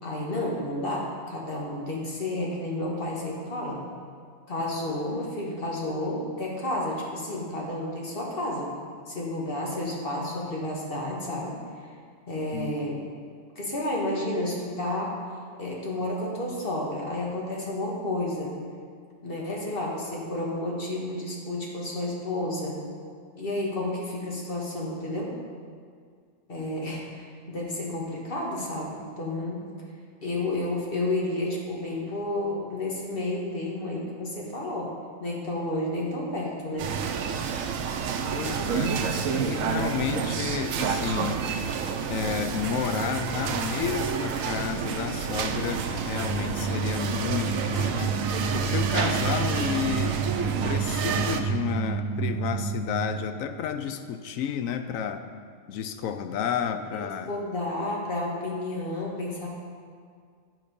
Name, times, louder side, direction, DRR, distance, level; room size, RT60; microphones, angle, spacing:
voice 1, 0.0-3.8 4.5-8.7 9.1-11.5 12.3-13.0 13.6-15.1 15.6-18.6 19.2-22.8 23.4-25.3 26.5-29.7 30.2-34.9 35.2-36.9 39.4-39.7 56.7-59.5, left 1 dB, 45° left, -3 dB, 1.6 m, -31 dB
sound 1, 36.8-51.4, right 6 dB, 90° right, 1.1 m, -29 dB
voice 2, 38.4-39.0 39.4-41.4 42.1-48.2 48.5-50.2 50.6-55.2 55.7-57.3, left 8 dB, 85° left, 9 dB, 1.0 m, -31 dB
sound 2, 46.1-53.5, right 5 dB, 20° right, 0.7 m, -30 dB
9.3 x 5.9 x 5.2 m, 2.1 s
omnidirectional pair, 1.4 m